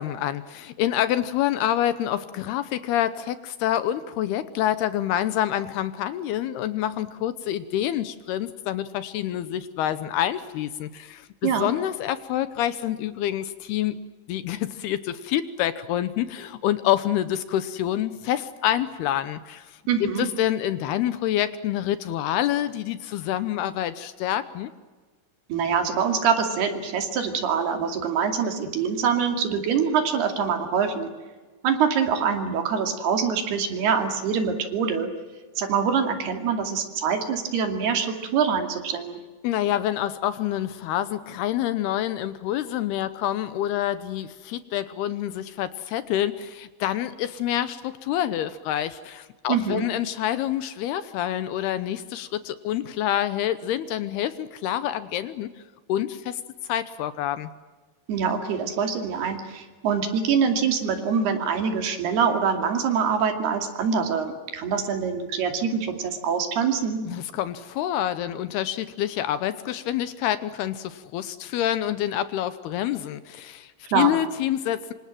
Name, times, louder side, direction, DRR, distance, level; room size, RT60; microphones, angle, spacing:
voice 1, 0.0-14.0 14.3-19.8 20.2-24.7 39.4-55.5 55.9-56.4 56.7-57.5 67.1-74.9, left 12 dB, 75° left, 13 dB, 2.7 m, -27 dB
voice 2, 19.9-20.3 25.5-31.1 31.6-35.1 35.6-39.2 49.5-49.9 58.1-67.0 73.9-74.1, right 6 dB, 65° right, 5 dB, 4.4 m, -24 dB
26.5 x 26.0 x 7.6 m, 1.3 s
omnidirectional pair, 5.0 m